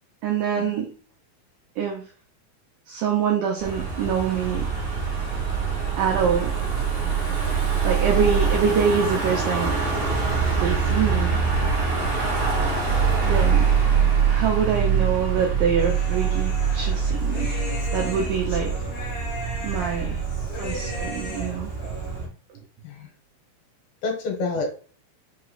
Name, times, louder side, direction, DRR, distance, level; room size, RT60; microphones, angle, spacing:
voice 1, 0.2-0.9 1.8-2.0 2.9-4.7 6.0-6.5 7.8-9.8 10.6-11.4 13.3-13.7 14.3-17.6 17.9-18.7 19.6-20.2 20.6-21.7, right 7 dB, 85° right, 1 dB, 1.8 m, -25 dB
Car passing by / Engine, 3.6-22.3, right 6 dB, 45° right, 1.7 m, -24 dB
Human voice, 15.8-22.2, left 2 dB, 55° left, 2.2 m, -37 dB
voice 2, 19.8-20.2 22.8-23.1 24.0-24.7, left 3 dB, 75° left, 2 dB, 2.7 m, -29 dB
5.9 x 3.0 x 2.3 m, 0.42 s
omnidirectional pair, 4.5 m